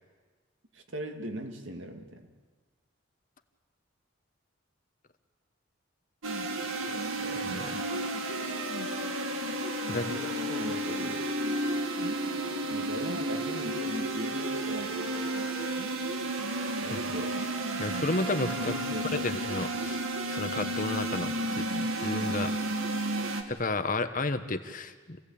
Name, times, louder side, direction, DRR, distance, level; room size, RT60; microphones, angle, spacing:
voice 1, 0.7-2.3 6.6-7.8 9.9-11.2 12.7-15.5 16.8-17.4 18.6-19.2, right 1 dB, 70° right, 5 dB, 2.1 m, -40 dB
sound 1, 6.2-23.4, right 1 dB, 90° right, 2.1 m, -32 dB
voice 2, 7.3-7.8 9.9-10.1 16.9-17.0 17.8-18.7 19.2-22.5 23.5-25.2, left 2 dB, 40° left, 9 dB, 1.2 m, -32 dB
28.0 x 16.5 x 8.7 m, 1.5 s
head